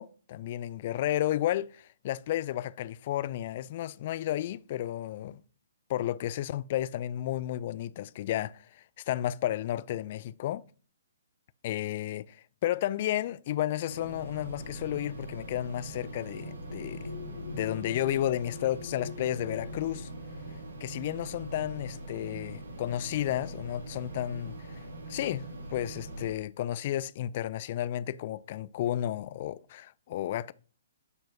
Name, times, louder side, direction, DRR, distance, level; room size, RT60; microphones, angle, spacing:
voice 1, 0.0-1.7 2.0-5.4 5.9-8.6 9.1-10.6 11.6-12.4 12.6-17.1 17.5-20.1 20.8-24.8 25.1-30.5, left 12 dB, 40° left, 0.3 m, -32 dB
sound 1, 13.9-26.3, right 1 dB, 65° right, 1.6 m, -42 dB
sound 2, 14.6-22.5 23.4-23.6 23.9-24.5, left 4 dB, 65° left, 0.7 m, -47 dB
12.0 x 4.3 x 2.7 m
figure-of-eight pair, 125°, 0 cm